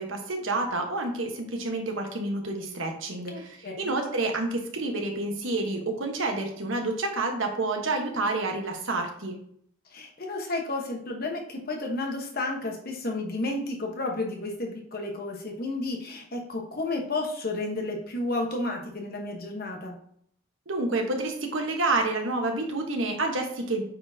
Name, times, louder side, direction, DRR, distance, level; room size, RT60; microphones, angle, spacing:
voice 1, 0.0-9.4 20.7-23.8, right 2 dB, 60° right, 2 dB, 1.2 m, -29 dB
voice 2, 3.3-3.9 9.9-20.0, left 2 dB, 45° left, 2 dB, 1.2 m, -32 dB
8.6 x 4.4 x 2.8 m, 0.65 s
head